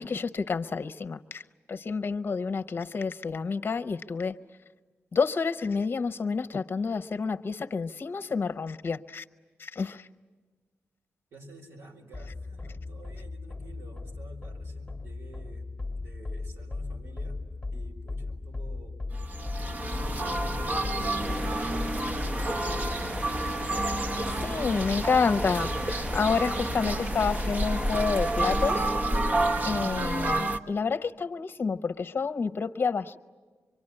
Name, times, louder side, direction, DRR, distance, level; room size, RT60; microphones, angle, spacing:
voice 1, 0.0-1.4 1.7-4.4 5.1-9.2 9.6-10.1 24.3-28.9 29.6-33.2, left 5 dB, 50° left, 10 dB, 0.7 m, -29 dB
voice 2, 11.3-15.7 15.9-17.4 17.7-19.0 19.8-21.2 21.8-23.1, right 2 dB, 85° right, 0 dB, 4.6 m, -50 dB
sound 1, 12.1-26.8, left 3 dB, 20° left, 1.3 m, -37 dB
sound 2, 19.1-30.6, right 1 dB, 40° right, 1.1 m, -29 dB
sound 3, 21.2-28.9, right 1 dB, 15° right, 0.9 m, -39 dB
25.0 x 23.5 x 9.8 m, 1.4 s
cardioid pair, 85°, 5 cm